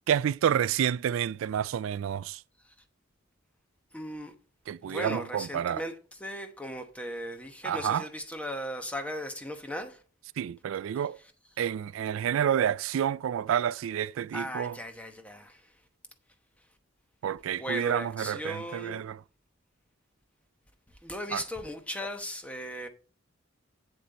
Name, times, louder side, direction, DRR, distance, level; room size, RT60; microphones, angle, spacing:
voice 1, 0.1-2.4 4.7-5.8 7.6-8.0 10.4-11.2 11.6-14.8 17.2-19.2 21.3-21.4, right 9 dB, 85° right, 0.3 m, -29 dB
voice 2, 3.9-4.3 4.8-5.9 6.2-10.0 14.3-15.7 17.5-19.0 21.0-22.9, equal, 5° left, 0.9 m, -37 dB
8.1 x 7.4 x 4.1 m
head